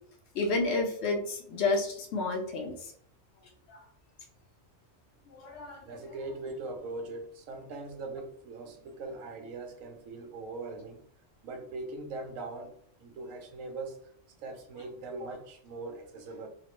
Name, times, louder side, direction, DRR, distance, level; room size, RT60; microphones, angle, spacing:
voice 1, 0.3-2.7 5.3-5.8, left 3 dB, 65° left, 2 dB, 0.8 m, -30 dB
voice 2, 5.9-11.0 11.4-12.7 13.0-14.0 14.4-16.5, right 3 dB, 85° right, 3 dB, 1.0 m, -41 dB
3.0 x 2.0 x 3.0 m, 0.64 s
omnidirectional pair, 1.3 m